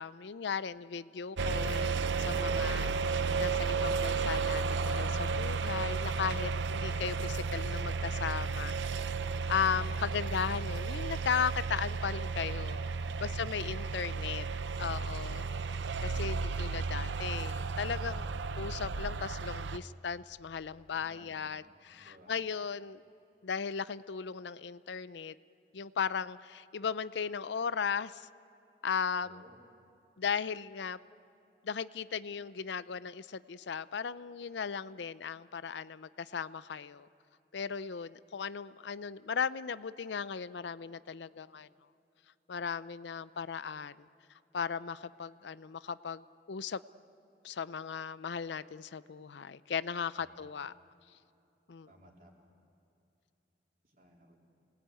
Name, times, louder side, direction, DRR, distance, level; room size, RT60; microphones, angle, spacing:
voice 1, 0.0-8.7 9.5-12.8 13.2-14.5 14.8-15.4 16.0-18.3 18.6-23.0 23.4-25.4 25.7-28.3 28.8-29.4 30.2-31.0 31.6-37.1 37.5-41.7 42.5-44.1 44.5-46.8 47.4-50.7 51.7-51.9, left 6 dB, 80° left, 16 dB, 0.5 m, -36 dB
sound 1, 1.4-19.8, right 4 dB, 90° right, 0.7 m, -33 dB
voice 2, 20.9-21.4 22.0-22.3 29.2-29.6 50.2-50.7 51.9-52.5 53.8-54.4, equal, 50° right, -1 dB, 4.0 m, -60 dB
28.5 x 19.0 x 9.1 m, 2.7 s
head